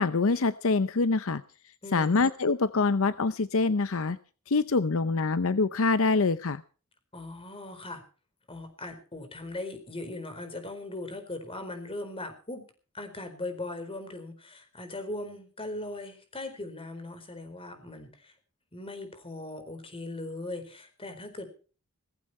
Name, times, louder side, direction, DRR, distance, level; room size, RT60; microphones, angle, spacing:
voice 1, 0.0-1.4 1.9-4.2 4.5-6.6, left 3 dB, 65° left, 14 dB, 0.7 m, -25 dB
voice 2, 1.8-2.2 7.1-8.0 8.5-12.6 12.9-18.3 18.7-21.5, left 2 dB, 25° left, 7 dB, 4.4 m, -39 dB
18.5 x 15.5 x 4.3 m, 0.38 s
head